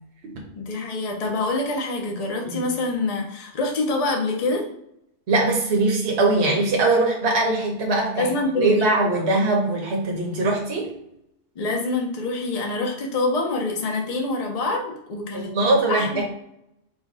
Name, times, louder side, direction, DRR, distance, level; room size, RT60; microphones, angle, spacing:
voice 1, 0.5-4.6 8.2-8.9 11.6-16.2, left 2 dB, 40° left, 1 dB, 0.7 m, -26 dB
voice 2, 5.3-10.9 15.3-16.2, right 2 dB, 70° right, 0 dB, 1.1 m, -21 dB
4.8 x 2.3 x 3.9 m, 0.78 s
omnidirectional pair, 1.2 m